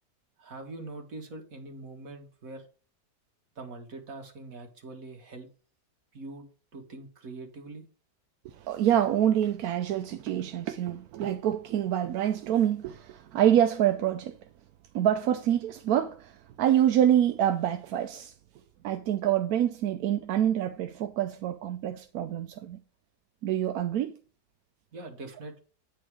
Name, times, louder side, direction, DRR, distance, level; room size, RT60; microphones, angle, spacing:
voice 1, 0.4-2.7 3.6-5.5 6.1-6.5 6.7-7.8 24.9-25.6, right 2 dB, 55° right, 1.9 m, -43 dB
voice 2, 8.6-14.4 14.9-18.3 18.8-22.8 23.4-24.2, right 10 dB, 70° right, 1.0 m, -26 dB
9.2 x 4.5 x 4.7 m
omnidirectional pair, 1.8 m